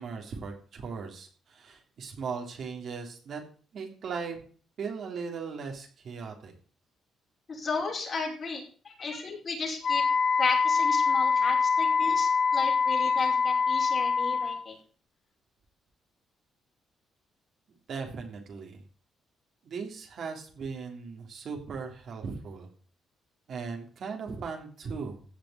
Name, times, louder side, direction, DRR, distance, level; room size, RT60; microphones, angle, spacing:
voice 1, 0.0-3.4 3.7-4.4 4.8-6.5 17.9-18.8 19.6-22.7 23.5-25.2, right 5 dB, 50° right, 2 dB, 3.3 m, -38 dB
voice 2, 7.5-10.0 10.4-14.8, left 4 dB, 35° left, -1 dB, 5.5 m, -34 dB
Wind instrument woodwind instrument, 9.8-14.6, left 5 dB, 50° left, 2.0 m, -25 dB
16.0 x 6.0 x 7.8 m, 0.42 s
cardioid pair, 150°, 0 cm